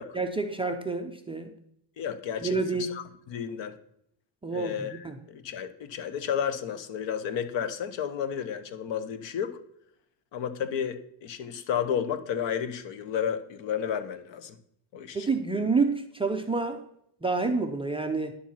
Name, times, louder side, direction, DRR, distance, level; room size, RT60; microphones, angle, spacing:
voice 1, 0.1-1.5 2.4-2.9 4.4-5.2 15.1-16.8 17.2-18.4, right 4 dB, 15° right, 3 dB, 0.4 m, -28 dB
voice 2, 2.0-3.8 4.5-9.6 10.3-14.6 14.9-15.3, left 8 dB, 65° left, 12 dB, 1.0 m, -32 dB
10.0 x 7.5 x 5.6 m, 0.73 s
cardioid pair, 180°, 47 cm